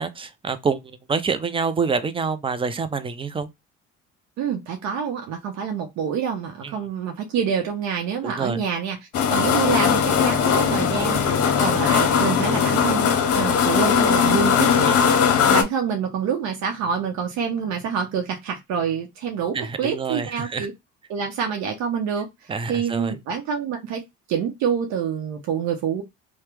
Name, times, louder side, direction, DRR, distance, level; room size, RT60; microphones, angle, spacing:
voice 1, 0.0-3.5 6.6-6.8 8.2-8.6 14.9-15.0 19.5-20.7 22.5-23.2, right 5 dB, 20° right, 0.5 m, -27 dB
voice 2, 4.4-9.0 9.3-20.7 21.1-24.0 24.3-26.0, right 7 dB, 70° right, 0.8 m, -27 dB
sound 1, 9.1-15.6, left 7 dB, 55° left, 0.8 m, -19 dB
2.9 x 2.2 x 3.3 m
supercardioid pair, 80°, 29 cm